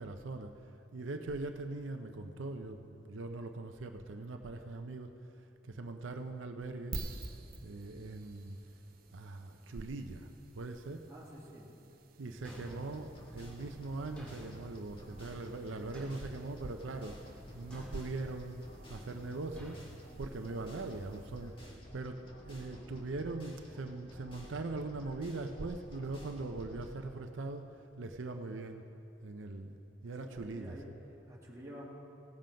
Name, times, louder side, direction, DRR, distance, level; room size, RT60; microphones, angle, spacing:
voice 1, 0.0-7.0 7.6-8.6 9.1-10.3 10.5-11.0 12.2-17.2 17.5-18.6 18.9-19.8 20.2-27.6 27.9-28.9 29.2-29.8 30.0-30.9, right 2 dB, 85° right, 6 dB, 0.6 m, -41 dB
sound 1, 6.9-21.7, right 2 dB, 50° right, 0.8 m, -51 dB
voice 2, 11.1-11.7 12.2-12.9 30.0-32.0, equal, 15° right, -5 dB, 2.3 m, -51 dB
sound 2, 12.4-26.9, equal, 30° left, 1.7 m, -52 dB
Thump thud, 12.4-13.1 14.2-14.7 15.9-16.5 17.7-18.1 19.6-19.9, equal, 5° left, 2.2 m, -51 dB
17.0 x 7.6 x 5.1 m, 2.9 s
head